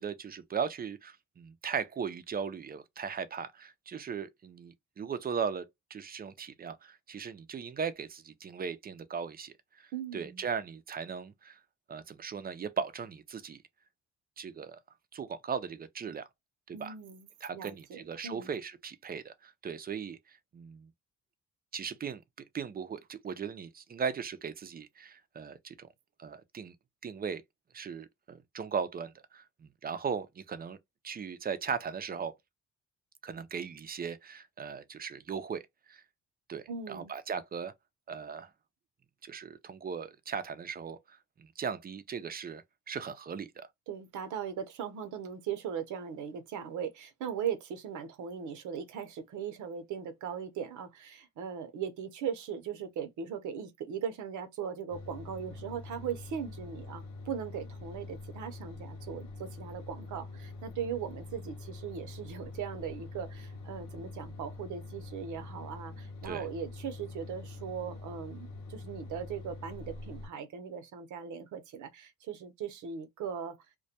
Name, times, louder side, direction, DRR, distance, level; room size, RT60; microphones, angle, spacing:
voice 1, 0.0-5.7 5.9-11.6 11.9-13.6 14.4-14.8 15.1-16.3 16.7-16.9 17.4-20.2 20.5-20.9 21.7-22.2 22.5-25.9 26.2-26.7 27.0-27.4 27.7-30.8 31.0-32.3 33.2-35.6 35.9-36.0 36.5-37.7 38.1-38.5 39.2-41.0 41.4-43.7 66.2-66.5, right 6 dB, 30° right, 0.4 m, -38 dB
voice 2, 9.9-10.5 16.7-18.5 36.7-37.1 43.9-73.6, right 7 dB, 75° right, 0.7 m, -39 dB
sound 1, 54.9-70.3, left 2 dB, 85° left, 0.8 m, -45 dB
2.2 x 2.2 x 2.7 m
cardioid pair, 90°, 30 cm